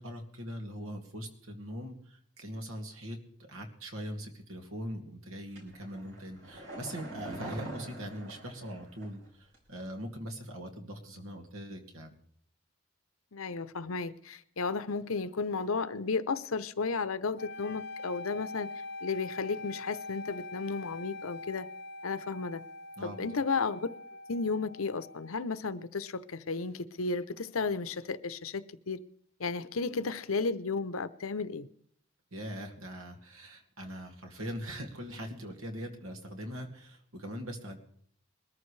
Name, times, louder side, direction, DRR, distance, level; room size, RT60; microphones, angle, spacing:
voice 1, 0.0-12.2 23.0-23.3 32.3-37.8, equal, 85° right, 2.4 m, -41 dB
sound 1, 5.5-9.3 9.5-9.6, right 1 dB, 65° right, 4.1 m, -44 dB
voice 2, 13.3-18.7 19.0-21.7 22.0-22.6 23.0-24.0 24.3-28.6 28.9-29.0 29.4-31.7, left 4 dB, 85° left, 0.8 m, -33 dB
sound 2, 17.4-25.4, left 2 dB, 50° left, 0.5 m, -43 dB
21.5 x 14.0 x 3.3 m
head